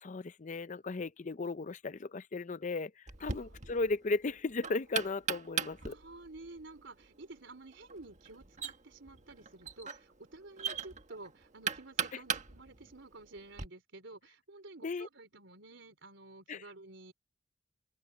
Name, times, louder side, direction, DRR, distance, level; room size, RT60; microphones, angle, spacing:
voice 1, 0.0-2.9 3.2-6.0 14.8-15.1 16.5-16.6, left 3 dB, 40° left, 0.5 m, -35 dB
Knock, 3.1-13.7, right 6 dB, 40° right, 1.4 m, -40 dB
voice 2, 3.2-3.7 5.8-17.1, right 2 dB, 90° right, 3.7 m, -51 dB
open air
head